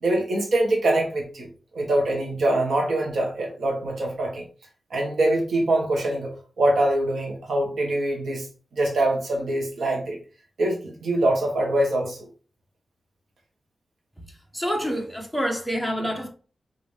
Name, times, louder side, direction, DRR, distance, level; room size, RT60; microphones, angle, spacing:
voice 1, 0.0-4.4 4.9-8.5 8.7-10.2 10.6-12.2, right 1 dB, 75° right, 1.2 m, -24 dB
voice 2, 14.5-16.3, equal, 5° right, 0.9 m, -27 dB
5.3 x 2.7 x 3.2 m
wide cardioid pair, 175°, 0 cm